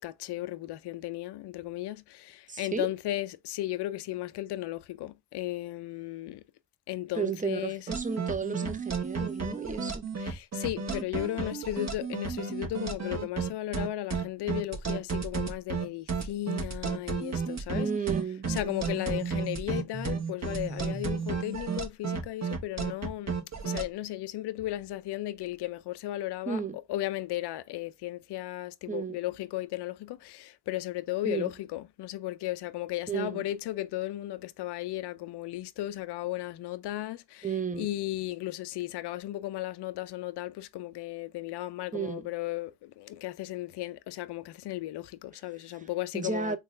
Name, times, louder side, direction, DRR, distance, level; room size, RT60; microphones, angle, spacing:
voice 1, 0.0-6.4 6.9-7.8 10.2-17.9 18.5-23.4 23.6-26.6 26.9-37.5 37.8-46.6, left 15 dB, 60° left, 0.5 m, -35 dB
voice 2, 2.5-2.9 7.1-10.1 17.7-18.5 26.5-26.8 28.9-29.2 31.2-31.5 33.1-33.4 37.4-37.9 41.9-42.3 45.7-46.6, right 6 dB, 15° right, 0.6 m, -33 dB
sound 1, 7.9-23.8, right 5 dB, 35° right, 1.2 m, -32 dB
3.7 x 3.2 x 2.5 m
cardioid pair, 95°, 46 cm